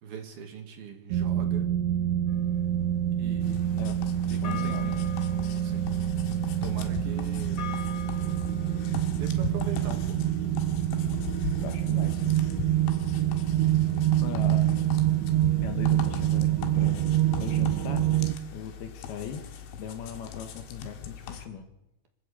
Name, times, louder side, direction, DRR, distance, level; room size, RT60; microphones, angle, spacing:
voice 1, 0.0-1.7 3.2-3.8 4.3-5.2 5.6-5.9 6.6-7.7 9.1-10.2, right 6 dB, 60° right, 4 dB, 3.8 m, -41 dB
sound 1, 1.1-18.4, right 12 dB, 85° right, 3.3 m, -26 dB
sound 2, 2.3-8.9, left 5 dB, 30° left, 3.3 m, -44 dB
sound 3, 3.4-21.5, left 8 dB, 90° left, 4.1 m, -40 dB
voice 2, 3.5-4.0 4.4-5.0 11.6-12.4 14.2-14.9 15.6-17.1 17.4-18.1 18.5-19.5 19.8-21.7, left 8 dB, 65° left, 7 dB, 3.1 m, -39 dB
25.5 x 12.5 x 8.5 m, 0.88 s
omnidirectional pair, 5.2 m